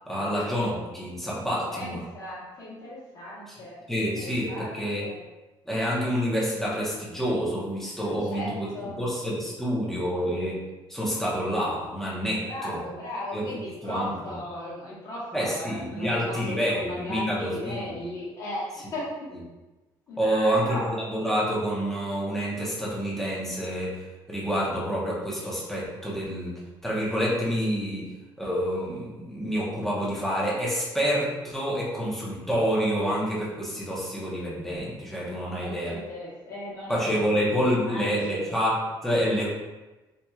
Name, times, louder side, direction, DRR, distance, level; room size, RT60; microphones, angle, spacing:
voice 1, 0.1-2.0 3.9-5.1 5.7-12.8 13.3-13.5 13.8-14.3 15.3-17.9 20.2-24.0 24.3-35.9 36.9-39.5, equal, 5° left, -7 dB, 0.9 m, -28 dB
voice 2, 1.7-5.2 8.0-9.0 12.4-19.3 20.1-20.9 35.5-38.6, left 1 dB, 45° left, -9 dB, 1.3 m, -37 dB
4.3 x 2.9 x 2.3 m, 1.1 s
cardioid pair, 150°, 9 cm